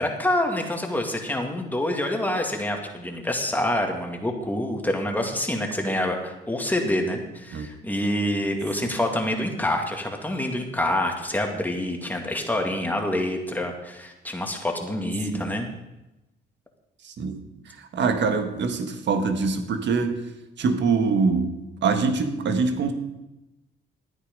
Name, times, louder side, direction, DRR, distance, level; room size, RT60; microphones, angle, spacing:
voice 1, 0.0-15.7, left 1 dB, 10° left, 2 dB, 2.2 m, -27 dB
voice 2, 17.0-20.2 20.6-22.9, right 4 dB, 65° right, 7 dB, 1.5 m, -24 dB
12.5 x 9.5 x 5.3 m, 0.98 s
cardioid pair, 90°, 20 cm